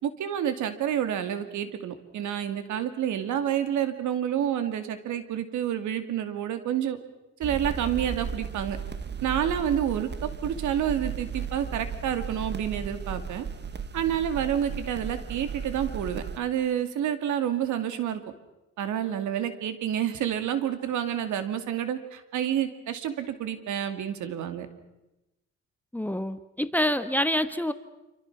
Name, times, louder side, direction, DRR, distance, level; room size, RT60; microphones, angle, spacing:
voice 1, 0.0-7.0 7.4-8.8 9.2-13.5 13.9-18.2 18.8-24.7, right 9 dB, 90° right, 9 dB, 2.5 m, -29 dB
sound 1, 7.4-16.4, right 6 dB, 35° right, 1.4 m, -35 dB
voice 2, 25.9-27.7, left 1 dB, 5° left, 10 dB, 1.2 m, -27 dB
27.5 x 26.0 x 6.1 m, 0.98 s
cardioid pair, 100°, 29 cm